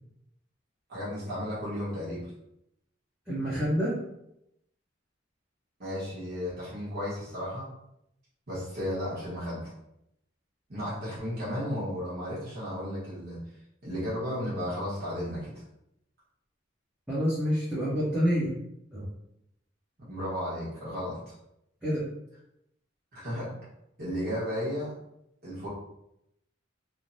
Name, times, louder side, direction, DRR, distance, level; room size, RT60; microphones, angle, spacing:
voice 1, 0.9-2.3 5.8-7.7 8.5-9.7 10.7-13.4 13.8-15.5 20.1-21.3 23.1-23.5 24.0-24.9 25.4-25.7, equal, 55° right, -9 dB, 1.1 m, -34 dB
voice 2, 3.3-3.9 17.1-18.5 18.9-19.1 21.8-22.0, equal, 5° right, -12 dB, 0.8 m, -27 dB
3.3 x 2.1 x 2.6 m, 0.81 s
head